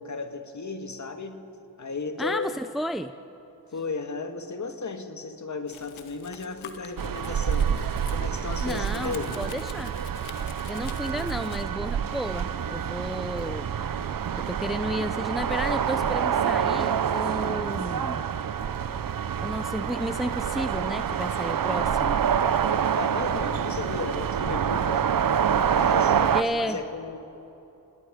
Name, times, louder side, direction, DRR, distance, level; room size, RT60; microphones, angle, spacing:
voice 1, 0.0-2.5 3.7-9.4 23.0-25.2 25.6-27.2, left 4 dB, 40° left, 6 dB, 2.0 m, -35 dB
voice 2, 2.2-3.1 8.6-9.9 10.7-13.7 14.4-18.2 19.4-22.2 26.3-26.8, equal, ahead, 10 dB, 0.6 m, -32 dB
Domestic sounds home sounds, 5.7-11.6, left 9 dB, 90° left, 1.3 m, -47 dB
sound 1, 7.0-26.4, right 8 dB, 45° right, 0.9 m, -27 dB
28.0 x 19.0 x 5.3 m, 3.0 s
cardioid pair, 65°, 46 cm